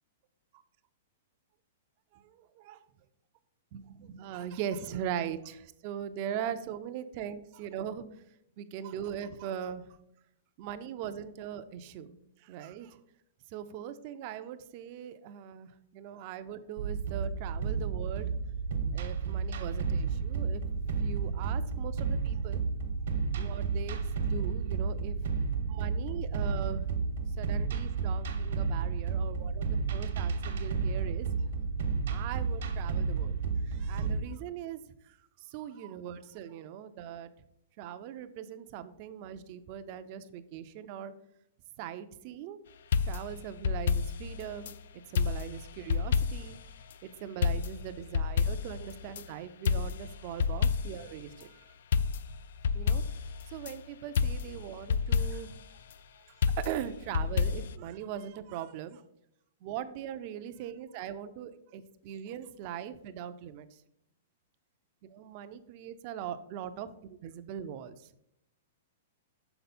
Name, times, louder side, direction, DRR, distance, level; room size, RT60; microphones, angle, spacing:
voice 1, 2.1-2.8 3.7-8.3 8.6-10.0 10.6-12.1 12.4-13.0 13.5-18.3 18.9-20.6 21.0-22.6 23.3-25.3 25.7-26.9 27.4-31.3 32.1-33.4 33.6-34.8 35.0-37.3 37.8-41.1 41.8-42.6 43.0-44.8 45.1-46.6 47.0-51.6 52.7-55.5 56.4-59.0 59.6-63.7 65.0-68.1, right 9 dB, 35° right, 11 dB, 0.4 m, -40 dB
sound 1, 16.8-34.2, right 5 dB, 65° right, 1.0 m, -32 dB
sound 2, 42.9-44.8 45.2-46.6 46.9-47.0 47.4-49.3 49.7-51.1 51.4-51.5 51.9-53.8 54.2-55.6 56.4-57.8, left 6 dB, 65° left, 0.3 m, -30 dB
6.7 x 4.2 x 4.2 m, 0.78 s
hypercardioid pair, 170°, 0 cm